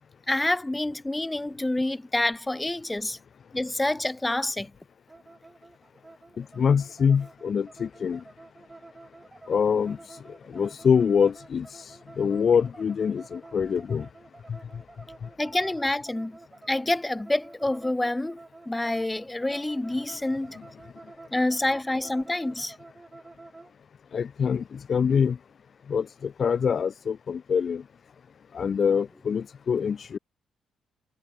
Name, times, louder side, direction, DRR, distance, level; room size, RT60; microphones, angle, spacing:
voice 1, 0.3-3.2 3.5-4.7 15.4-16.4 16.7-18.4 18.7-20.6 21.3-22.7, left 1 dB, 10° left, 0.7 m, -27 dB
sound 1, 5.1-23.7, right 2 dB, 20° right, 3.9 m, -49 dB
voice 2, 6.4-8.2 9.5-10.0 10.5-11.9 12.2-14.1 24.1-25.4 25.9-27.8 28.5-30.2, left 6 dB, 50° left, 0.4 m, -25 dB
cardioid pair, 90°, 0 cm